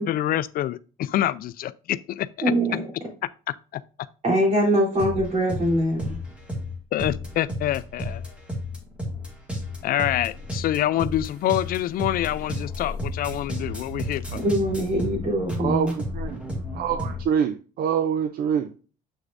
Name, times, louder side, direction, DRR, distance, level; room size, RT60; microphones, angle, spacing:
voice 1, 0.0-2.5 3.5-3.8 6.9-8.2 9.8-14.4, left 13 dB, 60° left, 0.4 m, -26 dB
voice 2, 2.4-2.8 4.2-6.2 14.4-16.0, equal, 40° right, 3.6 m, -23 dB
sound 1, 5.0-17.2, left 1 dB, 5° right, 2.1 m, -33 dB
voice 3, 15.6-16.4 16.7-18.7, right 8 dB, 60° right, 0.6 m, -25 dB
7.2 x 6.5 x 2.6 m
cardioid pair, 110°, 17 cm